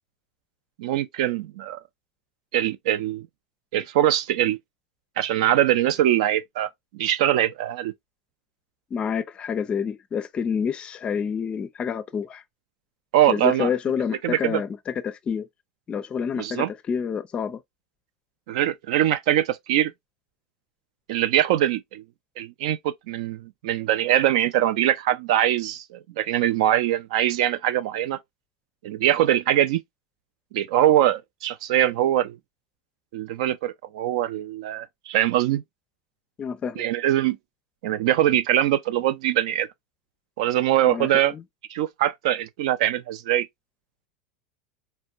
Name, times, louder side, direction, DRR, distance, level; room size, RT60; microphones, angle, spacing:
voice 1, 0.8-1.8 2.5-3.3 3.7-4.6 5.2-7.9 13.1-13.7 14.2-14.6 16.4-16.7 18.5-19.9 21.1-22.0 22.4-28.2 28.8-29.8 30.5-32.4 33.1-35.6 36.8-37.4 37.8-39.7 40.4-41.3 41.7-43.5, right 12 dB, 60° right, 0.4 m, -22 dB
voice 2, 8.9-12.4 13.3-15.5 15.9-17.6 36.4-36.8 40.9-41.4, left 7 dB, 30° left, 0.5 m, -28 dB
4.3 x 2.1 x 2.3 m
hypercardioid pair, 85°, 4 cm